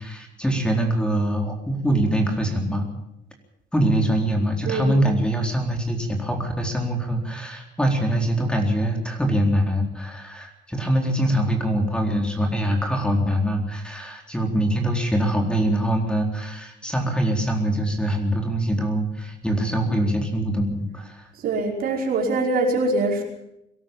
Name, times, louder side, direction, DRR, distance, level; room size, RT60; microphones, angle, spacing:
voice 1, 0.0-2.9 3.7-21.3, right 1 dB, 5° left, 3 dB, 4.0 m, -23 dB
voice 2, 4.7-5.0 21.4-23.2, right 2 dB, 65° right, 1 dB, 5.3 m, -23 dB
22.5 x 13.0 x 9.2 m, 0.83 s
cardioid pair, 110°, 17 cm